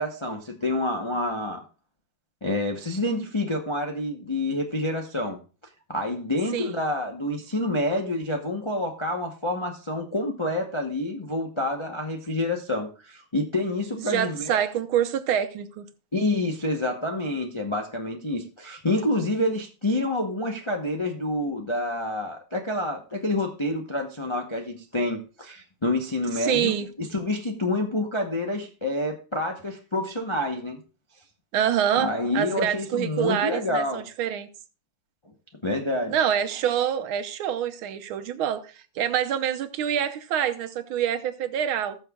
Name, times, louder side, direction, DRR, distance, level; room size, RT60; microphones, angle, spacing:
voice 1, 0.0-1.6 2.4-5.4 5.9-14.6 16.1-30.8 31.9-34.0 35.6-36.2, left 1 dB, 35° left, 0.4 m, -28 dB
voice 2, 14.0-15.9 26.4-26.9 31.5-34.5 36.1-42.0, right 9 dB, 80° right, 1.7 m, -26 dB
19.5 x 6.6 x 2.3 m
omnidirectional pair, 2.3 m